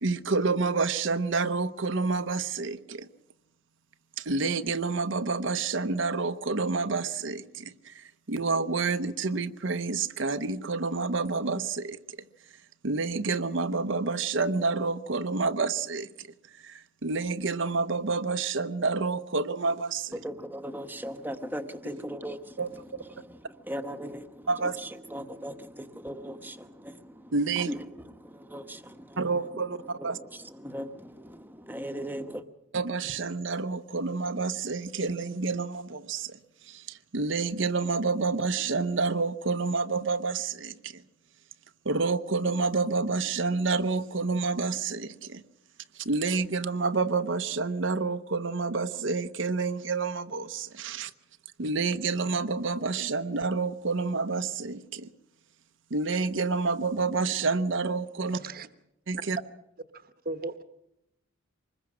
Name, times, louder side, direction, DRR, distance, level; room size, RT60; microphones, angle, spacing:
voice 1, 0.0-3.1 4.2-12.0 12.8-16.3 16.6-20.1 22.6-22.7 24.5-24.8 27.3-27.7 29.2-30.2 32.7-36.4 36.7-41.0 41.8-45.4 45.9-51.1 51.6-55.1 55.9-58.4 59.1-59.4, right 4 dB, 65° right, 0.8 m, -29 dB
voice 2, 20.1-32.5, equal, 10° right, 1.1 m, -39 dB
voice 3, 58.3-58.7 59.2-59.3 59.9-60.6, right 3 dB, 45° right, 1.1 m, -37 dB
25.0 x 21.0 x 6.2 m
head